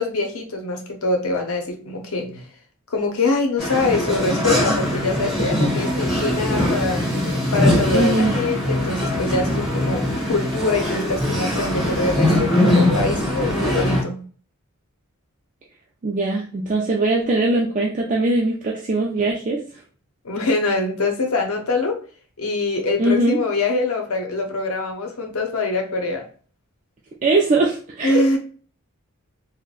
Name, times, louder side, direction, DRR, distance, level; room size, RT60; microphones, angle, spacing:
voice 1, 0.0-2.4 2.9-7.0 7.5-14.2 20.2-22.0 22.4-26.3 28.0-28.4, left 3 dB, 70° left, 3 dB, 0.7 m, -24 dB
sound 1, 3.6-14.0, left 1 dB, ahead, 1.1 m, -21 dB
voice 2, 7.9-8.3 16.0-19.6 23.0-23.4 27.2-28.4, right 2 dB, 35° right, -1 dB, 0.3 m, -21 dB
3.7 x 2.1 x 2.4 m, 0.42 s
head